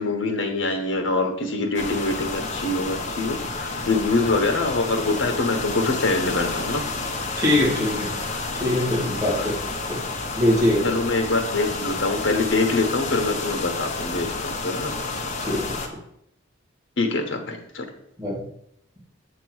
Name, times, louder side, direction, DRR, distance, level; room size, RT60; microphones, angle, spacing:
voice 1, 0.0-6.8 9.3-9.5 10.8-14.9 17.0-17.8, left 3 dB, 70° left, 5 dB, 1.1 m, -24 dB
sound 1, 1.7-15.9, left 3 dB, 40° left, 0.9 m, -30 dB
voice 2, 7.4-8.1 8.5-9.5 9.9-10.0 10.4-10.9 15.4-15.8 18.2-18.4, left 1 dB, 20° right, -5 dB, 2.6 m, -22 dB
7.8 x 3.0 x 6.2 m, 0.75 s
head